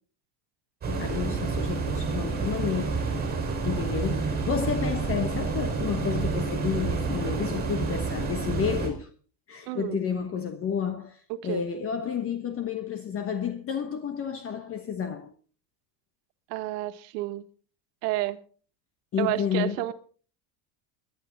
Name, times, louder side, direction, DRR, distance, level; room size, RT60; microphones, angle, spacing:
sound 1, 0.8-8.9, right 4 dB, 20° right, 4.7 m, -29 dB
voice 1, 0.9-3.0 3.6-9.1 9.5-15.3 19.1-19.8, left 7 dB, 30° left, 1.1 m, -31 dB
voice 2, 9.7-10.0 11.4-11.6 16.5-17.5 18.0-18.4 19.2-19.9, right 16 dB, 85° right, 1.7 m, -30 dB
20.0 x 11.0 x 3.9 m
cardioid pair, 155°, 47 cm